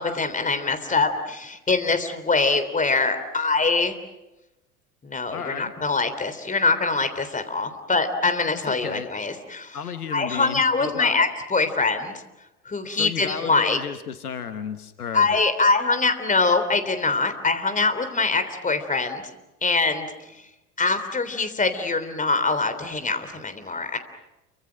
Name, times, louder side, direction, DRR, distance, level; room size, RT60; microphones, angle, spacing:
voice 1, 0.0-4.0 5.0-9.8 10.1-12.1 12.7-13.8 15.1-19.2 19.6-20.1 20.8-24.0, left 3 dB, 15° left, 9 dB, 3.4 m, -23 dB
voice 2, 5.3-5.7 8.6-9.1 9.7-11.3 12.9-15.4, left 7 dB, 80° left, 10 dB, 1.5 m, -33 dB
29.5 x 25.0 x 6.4 m, 0.97 s
figure-of-eight pair, 70°, 45 cm